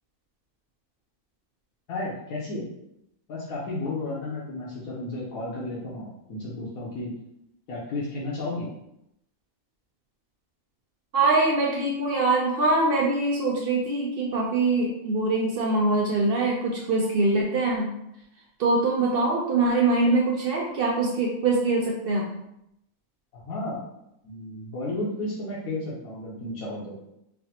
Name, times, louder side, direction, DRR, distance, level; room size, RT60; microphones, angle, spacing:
voice 1, 1.9-2.7 3.3-7.1 7.7-8.7 23.3-23.8 24.2-27.0, left 2 dB, 80° left, -7 dB, 1.2 m, -33 dB
voice 2, 11.1-17.9 18.6-22.3, right 2 dB, 80° right, -2 dB, 0.5 m, -23 dB
4.1 x 2.1 x 2.8 m, 0.81 s
omnidirectional pair, 1.5 m